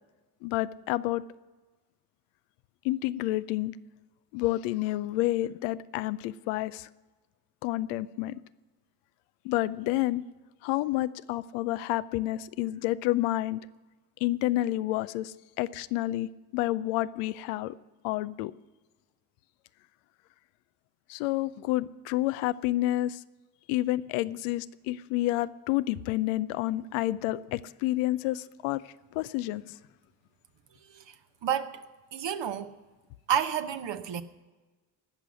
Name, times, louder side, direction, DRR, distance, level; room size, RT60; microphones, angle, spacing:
voice 1, 0.4-1.2 2.8-3.8 4.3-6.9 7.6-8.4 9.4-10.2 10.6-13.6 14.2-17.7 18.0-18.5 21.1-23.2 23.7-28.8 29.1-29.7, left 16 dB, 85° left, 0.6 m, -29 dB
voice 2, 31.4-31.7 32.1-32.7 33.3-34.2, right 9 dB, 60° right, 1.1 m, -29 dB
17.0 x 6.1 x 9.6 m
hypercardioid pair, 40°, 50 cm